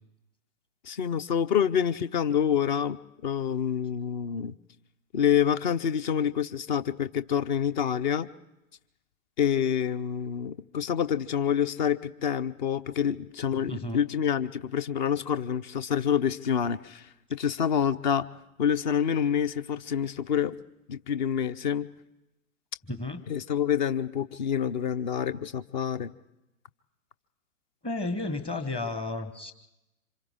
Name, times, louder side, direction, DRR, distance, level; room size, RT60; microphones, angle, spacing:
voice 1, 0.8-4.5 5.1-8.3 9.4-18.2 18.6-20.6 20.9-21.9 23.3-26.1, left 8 dB, 35° left, 16 dB, 0.7 m, -27 dB
voice 2, 13.7-14.0 22.9-23.2 27.8-29.5, left 2 dB, 10° left, 8 dB, 1.2 m, -32 dB
27.5 x 26.0 x 3.7 m, 0.91 s
figure-of-eight pair, 115°, 42 cm